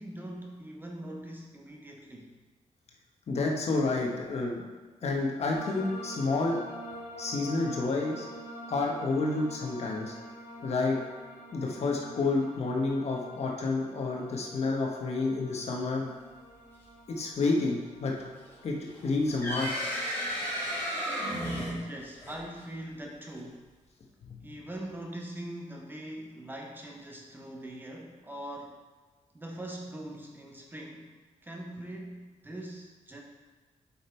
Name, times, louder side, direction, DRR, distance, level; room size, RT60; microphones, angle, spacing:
voice 1, 0.0-2.3 21.8-23.7 24.4-28.8 29.3-31.2 31.4-33.2, right 1 dB, 15° right, 0 dB, 0.9 m, -42 dB
voice 2, 3.3-4.6 5.0-6.6 7.2-8.3 8.7-10.1 10.6-11.0 11.5-16.0 17.2-18.1 18.6-18.8 19.0-19.7 24.3-24.4, left 3 dB, 55° left, 0 dB, 1.3 m, -29 dB
sound 1, 5.5-23.2, right 1 dB, 75° left, 1.5 m, -47 dB
sound 2, 18.9-22.6, equal, 15° left, 2.2 m, -33 dB
7.6 x 5.4 x 4.5 m, 1.3 s
wide cardioid pair, 160°, 13 cm